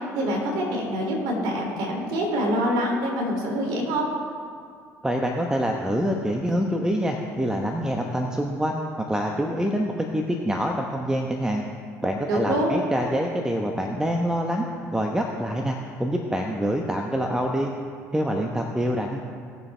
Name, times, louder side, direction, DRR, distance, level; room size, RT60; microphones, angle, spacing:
voice 1, 0.0-4.1 12.3-12.7, equal, 65° right, -1 dB, 3.0 m, -25 dB
voice 2, 5.0-11.6 12.0-14.7 14.9-17.7 18.1-19.2, equal, 10° right, 1 dB, 1.1 m, -26 dB
18.5 x 7.0 x 3.4 m, 2.2 s
hypercardioid pair, 60°, 8 cm